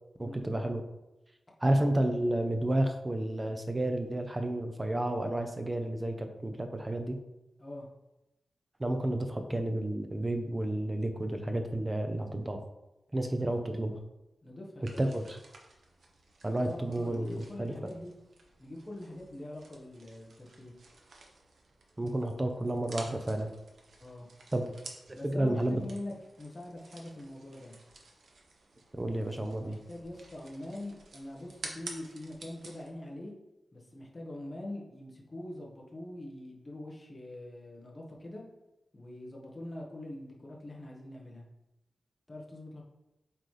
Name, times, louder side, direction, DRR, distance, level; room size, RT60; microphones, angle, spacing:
voice 1, 0.2-0.8 1.6-7.2 8.8-12.6 13.1-13.9 15.0-15.4 16.4-17.7 22.0-23.5 24.5-24.7 25.2-25.8 29.0-29.8, right 1 dB, 20° right, 5 dB, 0.6 m, -31 dB
voice 2, 13.2-13.8 14.4-15.0 16.6-18.1 18.6-20.7 24.0-24.3 25.1-27.8 29.6-33.3 33.7-38.4 38.9-41.5 42.3-42.8, left 1 dB, 20° left, -2 dB, 1.2 m, -44 dB
sound 1, 14.8-32.9, right 3 dB, 90° right, 1.0 m, -52 dB
7.8 x 4.1 x 3.3 m, 0.95 s
wide cardioid pair, 175°, 0 cm